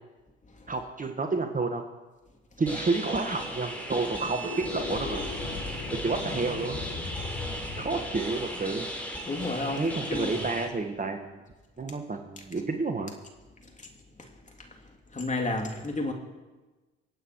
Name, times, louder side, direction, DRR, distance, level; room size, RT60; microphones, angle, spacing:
voice 1, 0.7-1.8 2.6-5.2 6.0-6.8 7.8-8.9 9.7-11.4 11.8-13.1, right 3 dB, 25° right, 5 dB, 1.6 m, -30 dB
sound 1, 2.7-10.7, equal, 5° left, 4.4 m, -36 dB
sound 2, 4.3-9.6, left 4 dB, 60° left, 3.7 m, -38 dB
voice 2, 9.2-10.5 13.8-13.9 15.1-16.1, left 2 dB, 25° left, 1 dB, 3.2 m, -31 dB
25.0 x 8.6 x 4.8 m, 1.2 s
hypercardioid pair, 55°, 30 cm